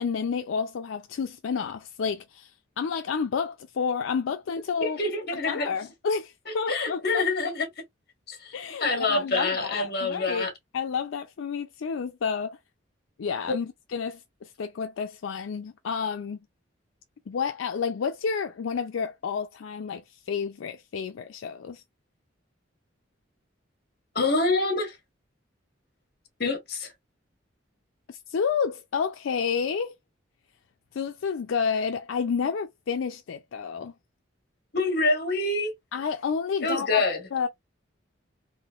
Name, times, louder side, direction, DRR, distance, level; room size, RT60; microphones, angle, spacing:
voice 1, 0.0-2.5 2.8-5.0 5.5-7.5 8.5-10.5 10.7-12.6 13.2-16.4 17.3-21.8 28.1-30.0 30.9-33.9 35.9-37.5, left 6 dB, 85° left, 0.4 m, -30 dB
voice 2, 4.8-5.7 6.5-7.7 8.3-8.5 8.8-10.5 13.5-13.6 24.1-25.0 26.4-26.9 34.7-35.7 36.6-37.2, left 2 dB, 55° left, 1.4 m, -26 dB
3.7 x 2.5 x 2.3 m
head